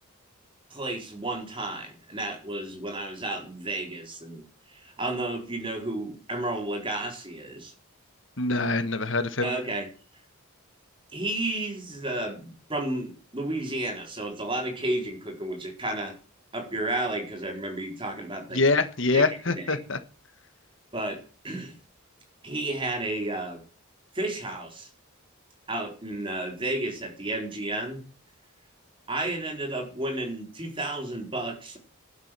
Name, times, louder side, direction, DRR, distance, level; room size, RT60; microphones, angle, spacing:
voice 1, 0.7-7.7 9.4-9.9 11.1-16.1 16.5-18.6 19.1-19.8 20.9-21.8 22.4-23.6 24.1-24.9 25.7-28.0 29.1-31.8, right 2 dB, 25° right, 3 dB, 4.1 m, -32 dB
voice 2, 8.4-9.5 18.5-20.0, left 3 dB, 55° left, 10 dB, 1.5 m, -24 dB
12.0 x 11.5 x 7.5 m, 0.36 s
head